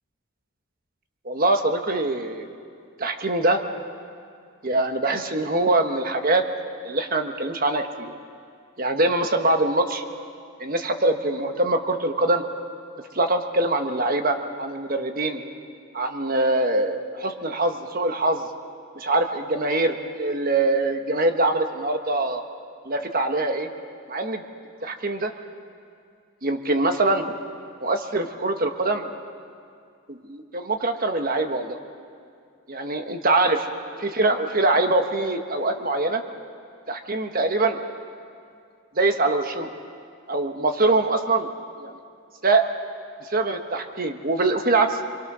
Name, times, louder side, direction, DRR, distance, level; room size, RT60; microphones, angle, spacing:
voice 1, 1.2-2.5 3.0-3.6 4.6-6.4 6.8-8.1 8.8-10.0 10.6-12.4 13.1-15.4 15.9-18.5 19.0-22.4 22.8-23.7 24.1-24.4 24.8-25.3 26.4-27.3 27.8-29.1 30.1-31.8 32.7-33.7 34.0-36.2 36.9-37.8 39.0-39.7 40.3-41.5 42.4-42.7 43.2-45.0, right 2 dB, 40° right, 6 dB, 1.3 m, -23 dB
28.0 x 22.5 x 6.2 m, 2.3 s
head